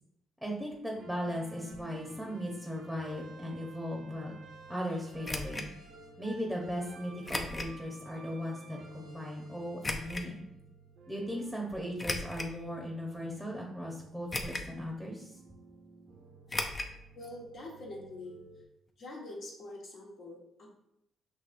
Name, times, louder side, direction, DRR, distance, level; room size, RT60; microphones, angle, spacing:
voice 1, 0.4-4.3 4.7-5.7 6.2-10.5 11.1-15.4, equal, 5° left, -1 dB, 0.9 m, -37 dB
sound 1, 0.9-18.7, right 3 dB, 70° right, 0.7 m, -53 dB
sound 2, 5.2-5.7 7.3-7.8 8.3-8.4 9.8-10.3 12.0-12.6 13.2-13.3 14.3-14.8 15.0-15.1 16.5-16.9 17.2-17.3 17.6-17.7, left 2 dB, 25° left, 0.5 m, -36 dB
voice 2, 17.1-18.4 19.0-20.8, left 1 dB, 65° left, -3 dB, 1.4 m, -45 dB
6.0 x 2.9 x 2.5 m, 0.81 s
cardioid pair, 90°, 0 cm